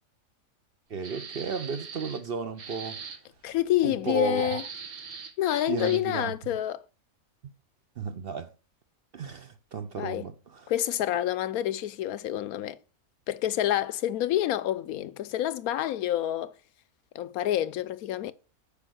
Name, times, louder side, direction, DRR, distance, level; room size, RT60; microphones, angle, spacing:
voice 1, 0.9-3.1 3.8-4.6 5.7-6.3 8.0-8.5 9.1-10.7, right 5 dB, 55° right, 0.7 m, -34 dB
sound 1, 1.0-2.3 2.6-3.2 4.3-6.2, right 6 dB, 75° right, 1.7 m, -41 dB
voice 2, 3.4-4.6 5.4-6.8 10.0-10.3 10.7-12.8 13.3-16.5 17.1-18.3, left 12 dB, 80° left, 1.1 m, -28 dB
8.4 x 5.3 x 6.3 m
omnidirectional pair, 1.5 m